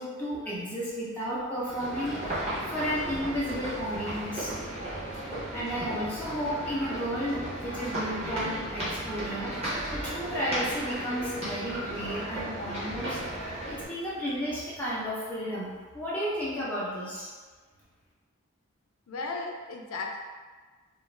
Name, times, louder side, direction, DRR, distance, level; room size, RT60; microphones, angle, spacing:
voice 1, 0.0-4.5 5.5-13.2 13.7-17.3, equal, 10° left, -10 dB, 0.5 m, -33 dB
sound 1, 1.6-13.8, right 1 dB, 30° right, 0.8 m, -35 dB
voice 2, 19.1-20.2, left 3 dB, 80° left, 1 dB, 0.4 m, -35 dB
2.3 x 2.2 x 3.1 m, 1.4 s
head